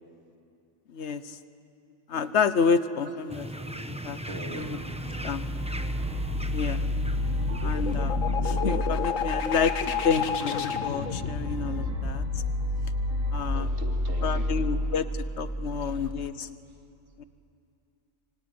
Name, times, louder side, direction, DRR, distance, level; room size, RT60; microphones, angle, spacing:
voice 1, 0.9-1.4 2.1-3.5 3.8-4.2 4.5-4.8 5.2-5.4 6.5-6.9 7.6-9.7 10.0-12.2 13.3-13.7 14.2-16.5 17.2-17.3, left 5 dB, 65° left, 12 dB, 1.2 m, -29 dB
voice 2, 2.9-3.8 4.2-5.2 10.2-10.4 10.8-10.9 13.5-15.0 15.6-15.7 16.0-16.1, right 2 dB, 60° right, 3 dB, 2.5 m, -45 dB
sound 1, 3.3-8.3, equal, 5° right, 0.8 m, -38 dB
sound 2, 4.6-16.3, left 1 dB, 90° right, 3.2 m, -31 dB
sound 3, 6.8-14.4, left 7 dB, 85° left, 1.6 m, -32 dB
25.0 x 23.5 x 9.6 m, 2.5 s
omnidirectional pair, 1.3 m